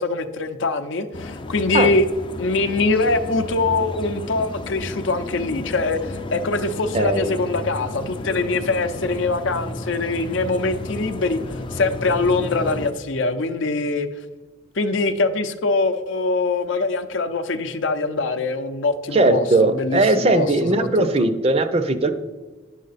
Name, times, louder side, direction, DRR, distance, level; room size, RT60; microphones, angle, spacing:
voice 1, 0.0-2.1 2.4-11.4 11.7-14.1 14.8-21.1, left 3 dB, 70° left, 9 dB, 0.6 m, -23 dB
sound 1, 1.1-12.9, left 2 dB, 25° left, 0.4 m, -32 dB
voice 2, 6.9-7.4 19.1-22.1, right 2 dB, 30° right, 9 dB, 0.5 m, -19 dB
9.3 x 6.4 x 4.0 m, 1.3 s
head